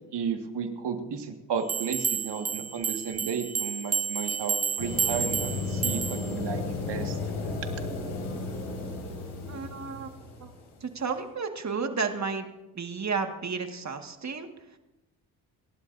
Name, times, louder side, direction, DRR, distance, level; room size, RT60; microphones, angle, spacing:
voice 1, 0.1-7.2, right 6 dB, 65° right, 5 dB, 1.9 m, -33 dB
sound 1, 1.7-6.3, right 6 dB, 20° right, 0.4 m, -30 dB
sound 2, 4.8-10.7, left 3 dB, 80° left, 5.0 m, -34 dB
voice 2, 9.5-10.1 10.4-10.5 10.8-14.5, right 5 dB, 40° right, 5 dB, 1.9 m, -32 dB
29.5 x 12.0 x 2.7 m, 1.0 s
supercardioid pair, 50°, 44 cm